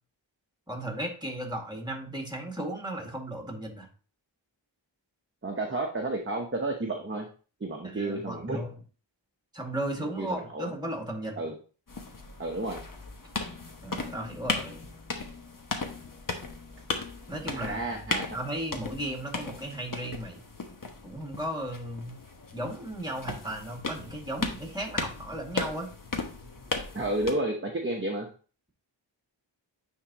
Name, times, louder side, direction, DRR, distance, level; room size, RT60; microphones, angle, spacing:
voice 1, 0.7-3.9 7.8-8.7 9.5-11.4 13.8-14.9 17.3-18.1 18.3-20.4 21.0-22.2 22.5-25.9, right 1 dB, 10° right, 1 dB, 2.0 m, -35 dB
voice 2, 5.4-7.2 7.6-8.7 10.0-10.7 11.4-11.5 12.4-12.8 17.5-18.3 26.9-28.3, right 2 dB, 25° right, 2 dB, 0.9 m, -31 dB
sound 1, 11.9-27.3, left 3 dB, 45° left, 1.0 m, -37 dB
9.4 x 3.7 x 2.9 m, 0.37 s
wide cardioid pair, 50°, 46 cm